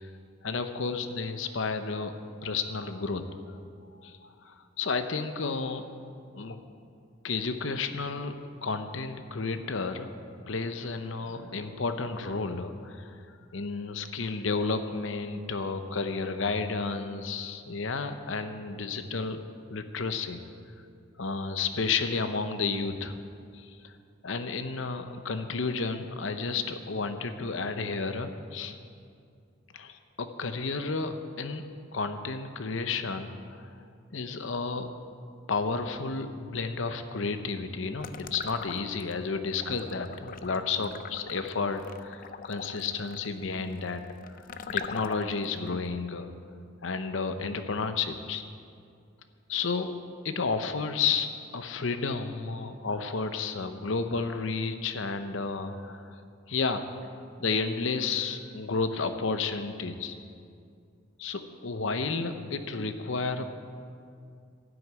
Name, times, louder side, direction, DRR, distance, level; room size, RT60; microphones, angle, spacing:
voice 1, 0.4-2.1 2.4-3.4 4.0-5.8 6.3-6.6 7.2-8.4 8.6-10.1 10.5-19.4 19.7-20.4 21.2-23.2 23.5-23.9 24.2-28.8 29.7-31.6 31.9-33.7 34.1-34.9 35.5-44.0 44.7-46.3 46.8-48.4 49.5-50.0 50.2-56.2 56.5-56.8 57.4-60.1 61.2-63.5, left 4 dB, 65° left, 9 dB, 0.7 m, -32 dB
sound 1, 38.0-39.1 39.5-45.5, left 6 dB, 40° left, 0.4 m, -40 dB
12.0 x 6.5 x 8.9 m, 2.4 s
head